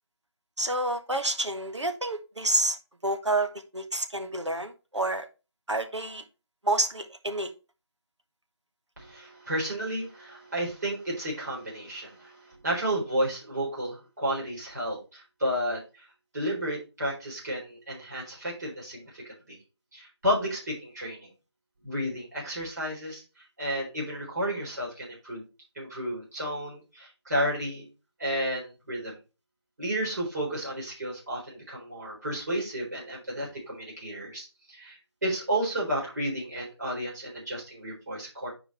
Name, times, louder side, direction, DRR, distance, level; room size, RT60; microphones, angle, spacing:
voice 1, 0.6-2.8 3.0-5.3 5.7-6.2 6.6-7.5, right 2 dB, 90° right, 6 dB, 1.5 m, -29 dB
voice 2, 9.0-16.1 16.3-19.6 19.9-21.3 21.8-25.4 25.8-27.9 28.2-29.2 29.8-38.5, equal, 40° right, -4 dB, 4.1 m, -32 dB
8.7 x 4.9 x 3.2 m, 0.30 s
figure-of-eight pair, 170°, 15 cm